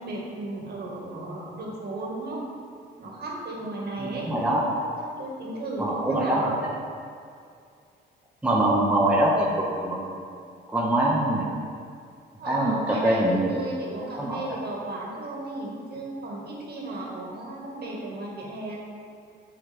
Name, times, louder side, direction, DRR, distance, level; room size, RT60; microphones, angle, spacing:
voice 1, 0.0-2.4 3.0-4.3 5.0-6.5 12.4-18.8, right 2 dB, 55° right, -3 dB, 1.8 m, -34 dB
voice 2, 4.0-4.6 5.8-6.7 8.4-10.2 10.7-11.5 12.4-13.5 14.2-14.4, right 1 dB, 5° right, -4 dB, 1.1 m, -24 dB
6.9 x 6.6 x 3.5 m, 2.3 s
cardioid pair, 90°, 20 cm